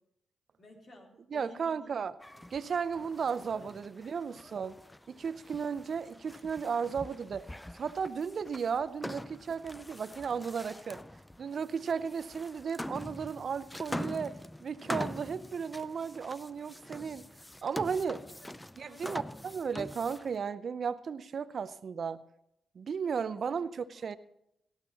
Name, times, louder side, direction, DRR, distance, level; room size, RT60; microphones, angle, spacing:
voice 1, 0.6-1.9 2.3-2.5 3.1-3.7 4.0-4.1 5.2-5.4 13.1-13.2 18.2-18.5 18.8-19.6 23.3-24.1, left 1 dB, 55° left, 0 dB, 3.8 m, -55 dB
voice 2, 1.3-2.1 2.5-4.8 5.1-7.5 7.7-11.0 11.4-14.3 14.6-17.2 17.6-18.2 18.8-22.2 22.7-24.2, right 6 dB, 60° right, 15 dB, 0.6 m, -34 dB
sound 1, 2.2-20.4, left 1 dB, 10° left, 0.5 m, -44 dB
18.0 x 12.5 x 3.0 m, 0.78 s
hypercardioid pair, 40°, 0 cm